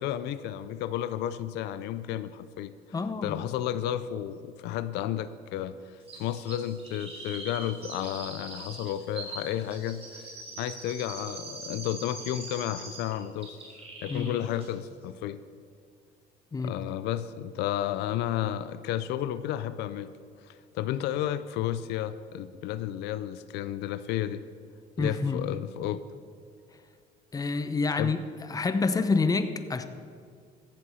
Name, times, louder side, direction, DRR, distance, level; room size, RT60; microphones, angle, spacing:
voice 1, 0.0-2.7 3.2-10.3 10.6-13.6 14.0-15.4 16.6-20.1 20.5-24.4 25.0-26.0 28.0-28.2, left 11 dB, 90° left, 14 dB, 0.5 m, -32 dB
voice 2, 2.9-3.4 14.1-14.3 16.5-16.8 25.0-25.4 27.3-28.2 28.5-29.8, left 4 dB, 20° left, 10 dB, 0.8 m, -27 dB
Chirp tweet, 6.1-13.1 13.4-14.4 14.6-14.7, right 3 dB, 35° right, 3.9 m, -42 dB
14.5 x 7.6 x 5.7 m, 2.2 s
cardioid pair, 110°, 17 cm